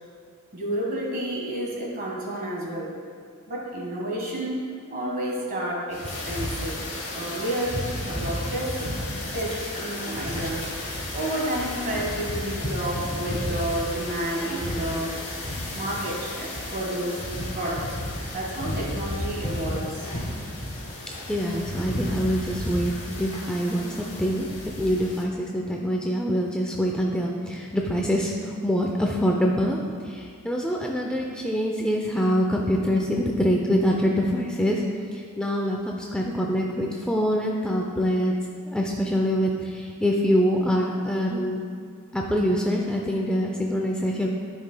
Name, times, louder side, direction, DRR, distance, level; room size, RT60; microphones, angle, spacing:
voice 1, 0.5-2.9 3.5-4.6 4.9-6.8 7.1-8.8 9.3-10.7 11.1-15.2 15.7-17.3 17.5-17.9 18.3-20.1, right 1 dB, 40° right, -3 dB, 1.6 m, -30 dB
sound 1, 5.9-25.2, left 1 dB, 30° left, 1.3 m, -33 dB
voice 2, 21.3-29.8 30.0-34.8 35.1-38.3 38.7-41.6 42.1-44.3, equal, 5° left, -1 dB, 0.4 m, -25 dB
12.5 x 5.4 x 2.2 m, 2.2 s
head